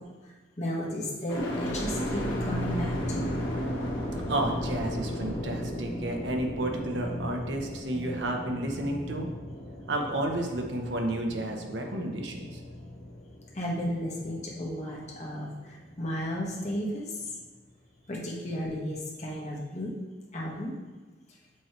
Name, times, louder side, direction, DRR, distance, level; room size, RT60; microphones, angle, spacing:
voice 1, 0.0-3.3 13.5-17.3 18.1-19.9 20.3-20.8, equal, 40° left, -3 dB, 1.2 m, -34 dB
sound 1, 1.3-15.3 15.8-16.5, equal, 80° left, 1.5 m, -35 dB
voice 2, 4.3-9.3 9.9-12.5, right 1 dB, 80° right, 2 dB, 0.8 m, -31 dB
7.5 x 3.1 x 4.4 m, 1.3 s
head